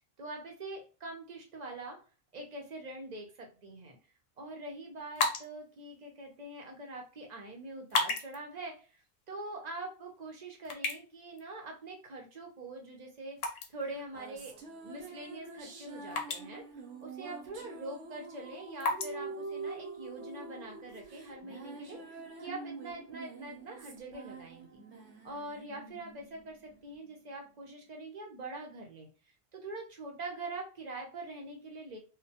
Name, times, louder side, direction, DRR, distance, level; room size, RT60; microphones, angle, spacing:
voice 1, 0.2-2.0 2.3-4.0 4.4-8.9 9.3-13.4 13.7-14.5 14.8-16.6 17.0-24.7 25.2-29.1 29.5-32.0, right 2 dB, 50° right, 1 dB, 0.5 m, -44 dB
sound 1, 5.0-20.4, left 3 dB, 75° left, 0.8 m, -40 dB
sound 2, 13.8-27.5, right 4 dB, 85° right, 0.9 m, -46 dB
2.1 x 2.1 x 2.7 m, 0.36 s
omnidirectional pair, 1.2 m